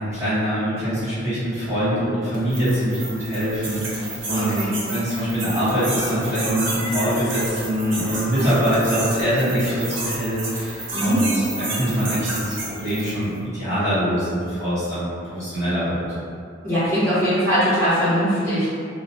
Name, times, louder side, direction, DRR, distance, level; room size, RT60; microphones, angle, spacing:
voice 1, 0.0-4.6 4.9-11.3 11.6-16.0, equal, 15° right, -15 dB, 1.0 m, -23 dB
sound 1, 2.3-13.3, right 2 dB, 85° right, 0.7 m, -31 dB
voice 2, 4.3-4.7 10.9-11.2 16.6-18.7, equal, 15° left, -15 dB, 1.0 m, -21 dB
2.3 x 2.1 x 2.6 m, 2.4 s
head